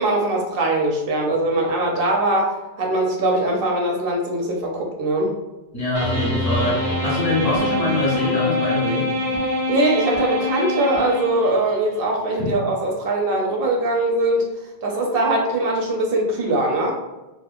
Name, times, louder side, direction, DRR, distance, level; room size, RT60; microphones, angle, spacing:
voice 1, 0.0-5.4 9.7-14.5 14.8-16.9, right 2 dB, 65° right, 0 dB, 0.7 m, -21 dB
voice 2, 5.7-9.2 12.4-12.6, left 1 dB, 40° left, -5 dB, 0.8 m, -24 dB
sound 1, 5.9-11.7, left 2 dB, 85° right, 1.0 m, -24 dB
2.9 x 2.1 x 2.4 m, 1.0 s
omnidirectional pair, 1.1 m